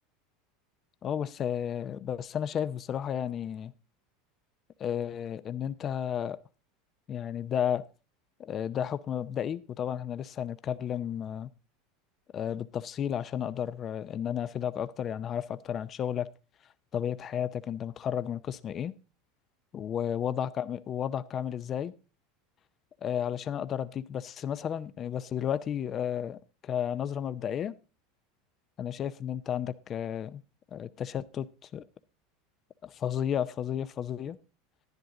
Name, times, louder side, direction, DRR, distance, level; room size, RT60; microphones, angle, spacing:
voice 1, 1.0-3.7 4.8-6.4 7.1-7.8 8.4-11.5 12.3-16.3 16.9-18.9 19.7-21.9 23.0-27.7 28.8-30.4 30.7-31.5 31.7-31.8 32.8-34.4, left 9 dB, 35° left, 0.5 m, -32 dB
10.5 x 10.5 x 3.8 m
supercardioid pair, 115°, 0 cm